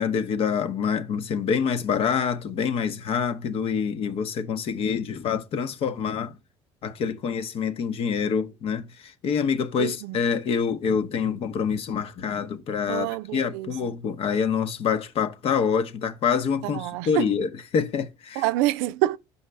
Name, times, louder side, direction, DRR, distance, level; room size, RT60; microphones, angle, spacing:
voice 1, 0.0-6.4 6.8-18.4, left 6 dB, 55° left, 0.8 m, -26 dB
voice 2, 9.8-10.2 12.9-13.9 16.6-17.3 18.4-19.2, right 16 dB, 75° right, 0.4 m, -27 dB
5.6 x 5.5 x 3.3 m
hypercardioid pair, 75°, 12 cm